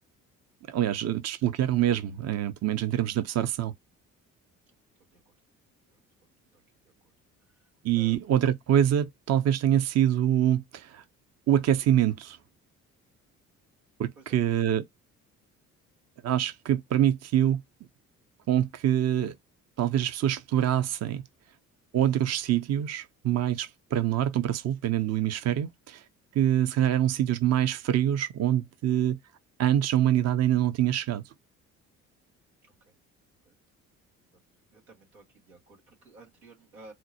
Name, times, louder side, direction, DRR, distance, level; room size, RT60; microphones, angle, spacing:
voice 1, 0.7-3.7 7.8-11.0 11.5-12.4 14.0-14.8 16.2-17.6 18.5-19.4 19.8-21.2 21.9-26.0 26.3-29.2 29.6-31.2, right 11 dB, 40° right, 0.6 m, -25 dB
voice 2, 7.9-8.4 14.2-14.4 28.9-29.0 32.9-33.0 33.4-33.5 34.7-36.9, right 3 dB, 85° right, 1.3 m, -54 dB
4.3 x 2.0 x 2.8 m
figure-of-eight pair, 50°, 41 cm